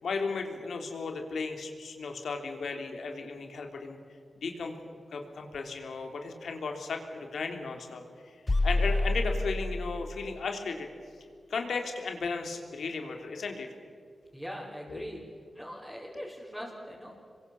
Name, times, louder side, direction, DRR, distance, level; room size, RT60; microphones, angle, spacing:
voice 1, 0.0-4.0 4.3-8.4 8.6-10.9 11.5-13.7 14.9-15.0 16.1-16.2, left 4 dB, 85° left, 4 dB, 3.4 m, -35 dB
sound 1, 8.5-10.3, left 2 dB, 30° left, 0.8 m, -28 dB
voice 2, 14.3-15.2 15.5-17.1, equal, 5° right, -6 dB, 5.4 m, -41 dB
27.0 x 23.0 x 7.2 m, 2.2 s
wide cardioid pair, 80°, 0 cm